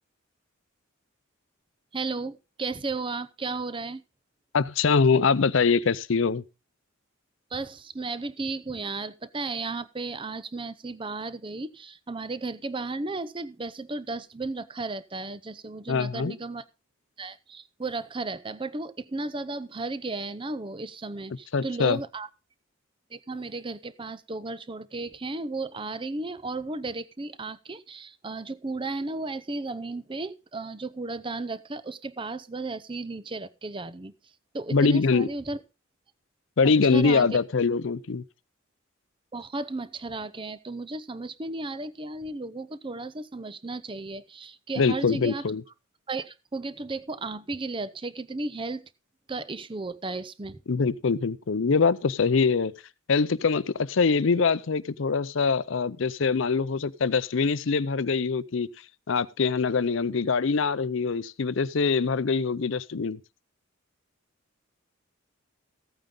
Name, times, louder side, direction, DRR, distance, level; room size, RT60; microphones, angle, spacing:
voice 1, 1.9-4.0 7.5-16.6 17.2-22.3 23.1-34.1 34.5-35.6 36.6-37.3 39.3-45.4 46.1-48.9 49.3-50.6, right 3 dB, 25° right, 0.6 m, -34 dB
voice 2, 4.5-6.4 15.9-16.4 21.5-22.0 34.7-35.3 36.6-38.2 44.8-45.6 50.7-52.7 53.1-58.7 59.1-63.2, left 5 dB, 60° left, 0.5 m, -23 dB
15.0 x 9.0 x 3.8 m
head